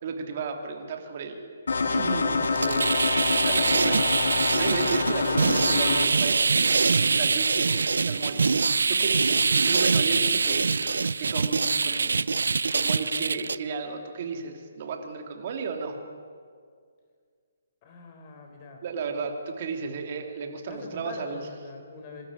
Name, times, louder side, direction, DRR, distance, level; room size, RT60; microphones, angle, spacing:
voice 1, 0.0-1.6 1.9-8.4 8.9-12.2 12.7-16.0 18.8-21.5, right 4 dB, 40° right, 4 dB, 2.9 m, -34 dB
sound 1, 1.7-6.1, left 4 dB, 80° left, 2.2 m, -26 dB
sound 2, 2.4-13.6, right 4 dB, 85° right, 0.6 m, -24 dB
voice 2, 17.8-18.8 20.7-22.3, left 4 dB, 30° left, 3 dB, 4.3 m, -42 dB
25.5 x 12.5 x 9.9 m, 2.1 s
hypercardioid pair, 160°, 0 cm